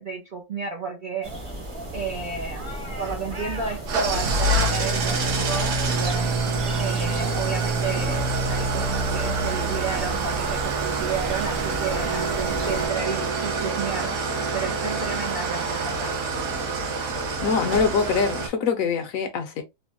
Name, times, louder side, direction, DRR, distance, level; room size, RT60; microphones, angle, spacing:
voice 1, 0.0-1.3 1.9-6.3 6.8-14.2 14.5-16.2, right 5 dB, 85° right, 0.4 m, -32 dB
sound 1, 1.2-12.9, right 1 dB, 30° right, 0.6 m, -35 dB
Engine starting / Idling, 3.9-18.5, right 3 dB, 65° right, 0.8 m, -26 dB
voice 2, 17.4-19.6, left 5 dB, 70° left, 0.8 m, -23 dB
3.2 x 2.0 x 2.6 m
omnidirectional pair, 1.8 m